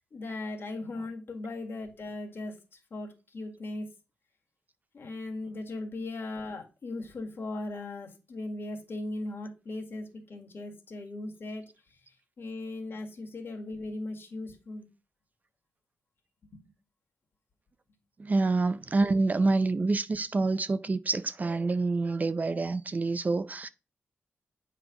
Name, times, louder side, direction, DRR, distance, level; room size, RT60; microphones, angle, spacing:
voice 1, 0.0-3.9 4.9-11.6 12.4-14.9 16.5-16.6, left 2 dB, 50° left, 1.8 m, -38 dB
voice 2, 18.2-23.7, right 3 dB, 35° right, 0.5 m, -27 dB
8.1 x 3.3 x 5.9 m
cardioid pair, 90°, 5 cm